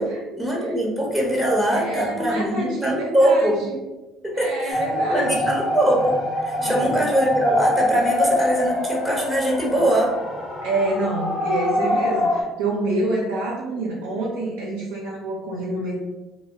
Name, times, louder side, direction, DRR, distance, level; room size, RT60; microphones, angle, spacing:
voice 1, 0.4-3.6 4.2-4.8 5.1-6.2 6.4-10.1, right 1 dB, ahead, -3 dB, 0.8 m, -22 dB
voice 2, 1.8-3.8 4.3-5.5 6.6-7.1 10.6-16.0, right 2 dB, 85° right, -4 dB, 0.5 m, -27 dB
sound 1, 4.7-12.4, left 1 dB, 50° left, 1.0 m, -24 dB
2.1 x 2.0 x 3.4 m, 1.1 s
supercardioid pair, 70°, 0 cm